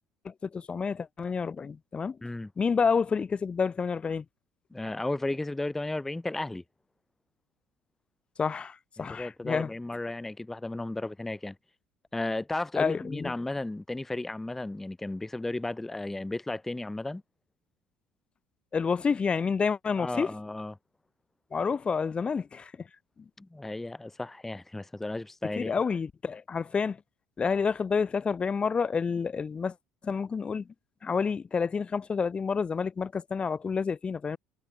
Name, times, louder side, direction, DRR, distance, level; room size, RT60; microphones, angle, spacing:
voice 1, 0.2-2.2 2.6-4.2 8.4-9.7 12.8-13.3 18.7-20.3 21.5-22.9 25.6-27.0 27.4-29.7 30.0-30.7 31.0-34.4, left 5 dB, 25° left, 0.9 m, -29 dB
voice 2, 4.7-6.6 9.0-11.6 12.1-17.2 20.0-20.7 23.4-25.8, left 2 dB, 5° left, 0.3 m, -34 dB
figure-of-eight pair, 60°, 4 cm